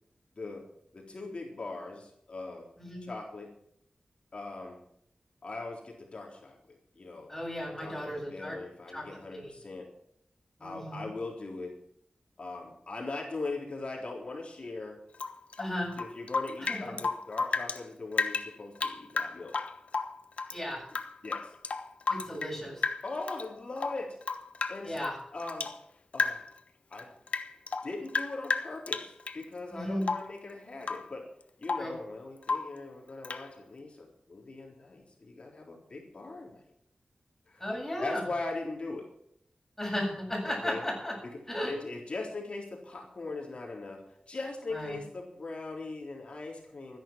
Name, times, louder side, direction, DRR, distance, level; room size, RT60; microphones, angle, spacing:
voice 1, 0.3-0.7 0.9-2.7 3.0-3.5 4.3-4.8 5.4-7.3 7.8-9.9 10.6-11.8 12.4-15.0 16.0-19.5 21.2-21.5 23.0-24.2 24.7-25.0 25.3-25.7 26.1-26.5 26.9-27.1 27.8-31.3 31.6-36.6 37.5-37.7 38.0-39.1 40.6-40.9 41.2-41.4 41.7-47.0, left 3 dB, 55° left, 0 dB, 3.8 m, -40 dB
voice 2, 2.8-3.1 7.3-8.6 8.9-9.6 10.6-11.1 15.6-15.9 16.6-17.0 20.5-20.8 22.1-22.8 24.8-25.2 29.7-30.1 31.8-31.9 37.6-38.2 39.8-41.2 41.5-41.7 44.7-45.0, left 1 dB, 10° left, -2 dB, 8.0 m, -35 dB
Rain / Drip, 15.1-17.8 18.1-20.6 20.9-22.6 22.8-23.5 23.8-25.8 26.1-26.6 26.9-29.4 30.0-30.4 30.8-31.1 31.4-32.0 32.4-32.8 33.2-33.5, left 4 dB, 75° left, 1.1 m, -33 dB
13.5 x 10.5 x 7.5 m, 0.69 s
wide cardioid pair, 90°, 2 cm